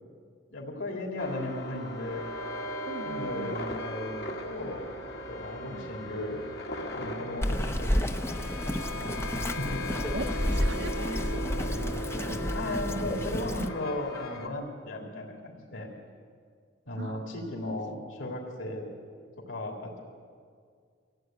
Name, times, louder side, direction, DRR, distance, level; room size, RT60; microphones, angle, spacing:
voice 1, 0.5-2.3 3.0-6.4 6.9-9.8 12.5-15.9 16.9-18.9 19.5-20.0, left 1 dB, 85° left, -1 dB, 3.6 m, -36 dB
sound 1, 1.2-14.5, left 1 dB, 55° left, 2.1 m, -37 dB
voice 2, 2.8-3.6 5.7-5.9 10.1-12.8 17.0-17.8, right 3 dB, 65° right, 10 dB, 0.7 m, -42 dB
Bird vocalization bird call bird song, 7.4-13.7, equal, 15° left, 0.7 m, -31 dB
25.0 x 16.0 x 9.2 m, 2.1 s
head